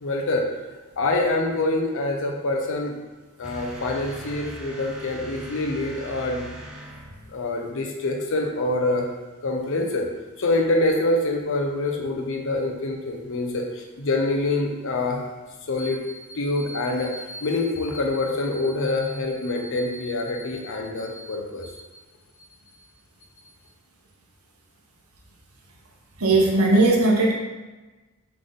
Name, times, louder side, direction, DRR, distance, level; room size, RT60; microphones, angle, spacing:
voice 1, 0.0-0.5 1.0-2.9 3.4-6.5 7.3-9.1 9.4-10.1 10.4-15.2 15.7-21.8, left 2 dB, 60° left, 2 dB, 0.6 m, -25 dB
sound 1, 3.4-7.4, right 1 dB, 5° right, 0.5 m, -40 dB
voice 2, 26.2-27.3, right 2 dB, 75° right, -1 dB, 0.9 m, -18 dB
3.7 x 3.4 x 3.8 m, 1.2 s
head